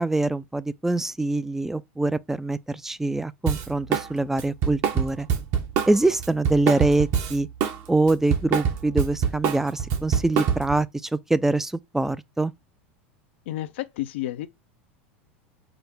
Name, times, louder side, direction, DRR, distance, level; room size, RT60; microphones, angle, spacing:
voice 1, 0.0-5.3 5.9-7.5 7.9-12.5, right 2 dB, 5° right, 0.3 m, -24 dB
Drum kit, 3.5-4.1 4.4-7.8 8.1-10.8, right 7 dB, 50° right, 0.9 m, -25 dB
voice 2, 13.5-14.5, left 14 dB, 70° left, 0.4 m, -31 dB
5.0 x 2.0 x 4.6 m
hypercardioid pair, 90°, 6 cm